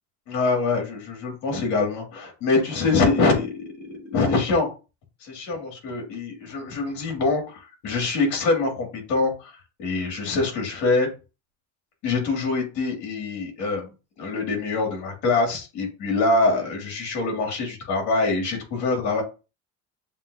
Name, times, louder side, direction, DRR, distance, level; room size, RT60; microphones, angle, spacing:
voice 1, 0.3-4.7 5.2-11.1 12.0-19.2, left 3 dB, 60° left, 2 dB, 2.2 m, -24 dB
7.2 x 2.5 x 2.6 m, 0.30 s
cardioid pair, 165°, 32 cm